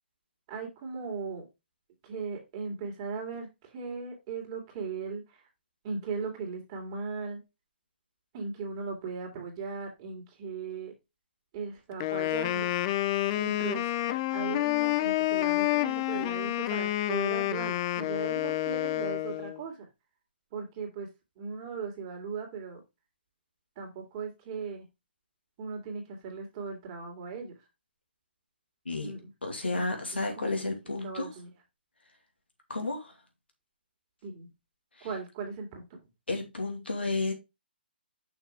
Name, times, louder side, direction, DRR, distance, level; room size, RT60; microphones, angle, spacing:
voice 1, 0.5-1.5 2.0-5.5 5.8-7.4 8.3-10.9 11.5-12.7 13.4-13.9 14.3-19.9 20.5-21.1 21.4-22.8 23.8-24.9 25.6-27.7 28.9-29.3 29.7-29.8 30.1-31.5 34.2-34.5 35.0-36.0, right 5 dB, 30° right, 2.8 m, -38 dB
Wind instrument woodwind instrument, 12.0-19.6, left 15 dB, 30° left, 0.5 m, -29 dB
voice 2, 29.4-31.3 32.7-33.1 35.0-35.1 36.3-37.3, left 3 dB, 80° left, 2.6 m, -32 dB
6.2 x 6.2 x 3.4 m
figure-of-eight pair, 135°, 6 cm